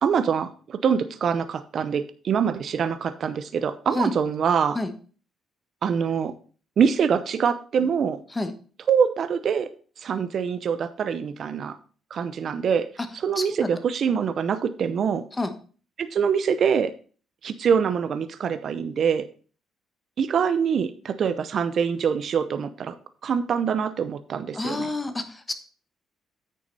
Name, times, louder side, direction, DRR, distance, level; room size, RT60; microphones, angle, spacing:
voice 1, 0.0-4.8 5.8-6.3 6.8-8.2 8.9-9.7 10.0-11.8 12.1-12.9 13.1-15.2 16.0-16.9 17.4-19.3 20.2-23.0 23.2-24.9, right 7 dB, 60° right, 11 dB, 0.6 m, -24 dB
voice 2, 13.4-13.7 15.4-15.5 24.5-25.5, left 2 dB, 20° left, 8 dB, 1.3 m, -28 dB
9.1 x 6.4 x 4.0 m, 0.40 s
cardioid pair, 90°, 0 cm